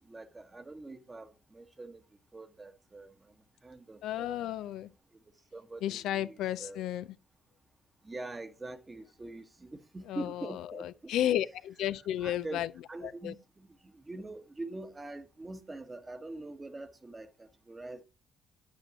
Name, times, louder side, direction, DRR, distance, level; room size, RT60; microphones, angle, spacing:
voice 1, 0.1-2.0 2.3-3.1 3.6-4.5 5.5-6.8 8.0-10.9 12.2-13.7 14.1-18.0, right 2 dB, 25° right, 1.2 m, -44 dB
voice 2, 4.0-4.9 5.8-7.0 10.1-12.7 13.2-13.3, left 12 dB, 70° left, 0.4 m, -33 dB
9.2 x 8.2 x 3.0 m
hypercardioid pair, 55°, 0 cm